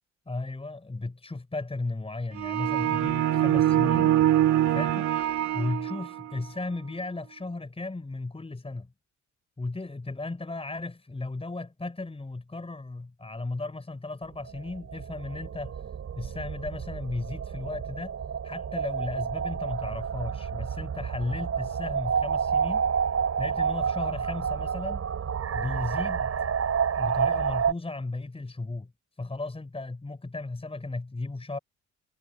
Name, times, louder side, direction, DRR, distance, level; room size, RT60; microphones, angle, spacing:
voice 1, 0.3-4.1 4.7-5.1 5.5-8.9 9.6-15.8 16.2-18.1 18.4-22.9 23.4-25.1 25.5-26.3 27.0-28.9 29.2-31.6, left 2 dB, 20° left, 5.9 m, -35 dB
sound 1, 2.4-6.3, right 12 dB, 70° right, 2.6 m, -24 dB
sound 2, 14.5-27.7, right 7 dB, 55° right, 7.0 m, -29 dB
cardioid pair, 90°, 30 cm